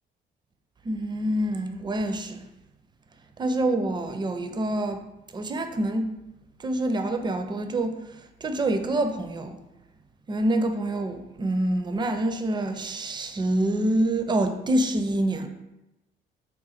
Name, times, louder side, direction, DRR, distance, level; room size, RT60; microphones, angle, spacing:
voice 1, 0.8-2.5 3.4-5.0 5.3-6.1 6.6-8.0 8.4-9.6 10.3-15.5, right 1 dB, 20° right, 0.4 m, -26 dB
3.8 x 2.3 x 4.1 m
cardioid pair, 90°, 20 cm